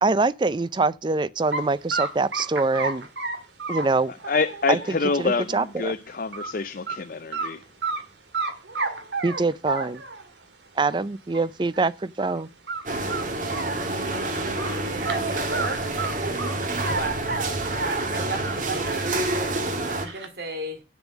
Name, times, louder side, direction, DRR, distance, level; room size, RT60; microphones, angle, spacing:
voice 1, 0.0-3.1 3.7-4.1 4.7-5.9 9.2-10.0 10.8-12.5, right 3 dB, 25° right, 0.4 m, -24 dB
sound 1, 1.5-1.6 1.9-5.7 6.1-6.5 6.9-7.0 7.3-8.0 8.3-10.3 10.9-11.0 11.3-11.4 11.7-11.8 12.2-12.4 12.7-14.2 14.6-17.0 17.3-19.2 19.5-20.3, right 3 dB, 85° right, 2.0 m, -31 dB
voice 2, 4.1-7.6, left 4 dB, 50° left, 0.5 m, -27 dB
sound 2, 12.9-20.1, right 2 dB, 45° right, 1.8 m, -28 dB
voice 3, 14.8-15.3 16.3-16.4 16.7-17.3 17.8-20.8, right 2 dB, 60° right, 2.6 m, -35 dB
8.3 x 7.0 x 7.2 m
head